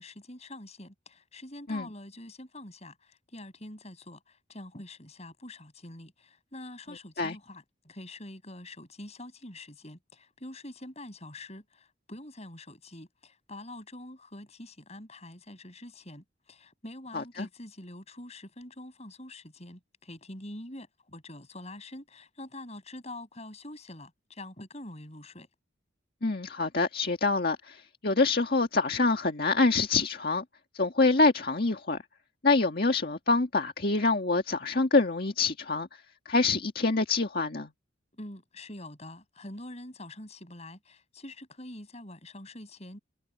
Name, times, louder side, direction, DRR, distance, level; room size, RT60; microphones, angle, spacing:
voice 1, 0.0-25.5 38.1-43.0, left 1 dB, 35° left, 7.0 m, -45 dB
voice 2, 17.1-17.5 26.2-30.4 30.7-32.0 32.4-35.9 36.3-37.7, left 3 dB, 50° left, 1.9 m, -26 dB
head